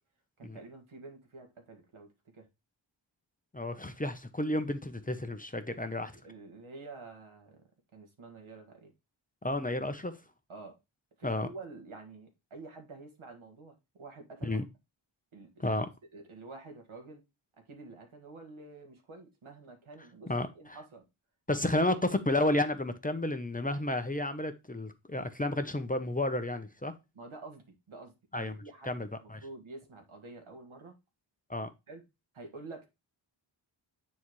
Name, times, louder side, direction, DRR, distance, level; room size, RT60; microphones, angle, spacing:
voice 1, 0.4-2.5 6.2-7.6 7.9-8.9 10.5-10.8 11.2-14.6 15.3-15.6 16.1-17.2 17.6-21.0 21.5-22.0 27.1-31.0 31.9-32.0 32.3-32.9, right 3 dB, 80° right, 2.0 m, -49 dB
voice 2, 3.5-6.1 9.4-10.2 11.2-11.5 14.4-14.7 15.6-15.9 20.3-20.8 21.5-26.9 28.3-29.4 31.5-31.7, left 1 dB, 15° left, 0.8 m, -32 dB
9.6 x 4.2 x 3.2 m
wide cardioid pair, 80°, 48 cm